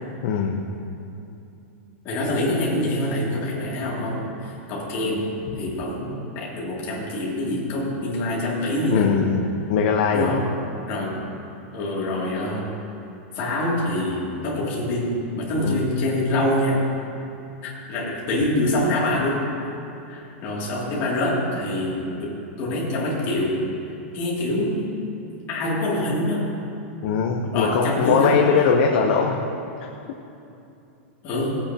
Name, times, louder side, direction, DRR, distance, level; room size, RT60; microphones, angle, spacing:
voice 1, 0.2-0.6 8.9-10.4 15.6-16.0 27.0-29.5 29.8-29.9, left 6 dB, 45° left, 1 dB, 0.8 m, -21 dB
voice 2, 2.0-5.3 5.6-9.1 10.1-10.5 10.9-11.2 11.7-12.8 13.3-16.9 17.6-19.4 20.1-23.6 24.1-24.8 25.5-26.5 27.5-28.4 31.2-31.5, left 1 dB, 30° left, -5 dB, 2.5 m, -25 dB
19.0 x 8.5 x 2.9 m, 2.8 s
supercardioid pair, 170°, 7 cm